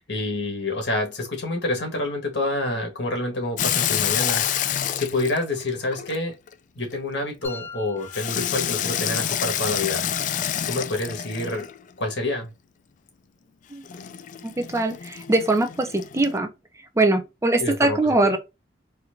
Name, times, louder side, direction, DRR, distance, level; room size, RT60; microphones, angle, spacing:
voice 1, 0.1-4.5 4.9-6.3 6.7-10.1 10.7-11.7 12.0-12.5 17.6-18.4, left 2 dB, 80° left, 1.6 m, -27 dB
Water tap faucet / Sink (filling or washing), 3.6-6.5 8.1-11.8 13.9-16.4, left 10 dB, 45° left, 0.3 m, -28 dB
sound 1, 7.4-9.5, left 4 dB, 15° left, 1.0 m, -42 dB
voice 2, 14.4-16.5 17.0-18.4, right 2 dB, 15° right, 0.5 m, -22 dB
4.3 x 2.6 x 2.6 m
head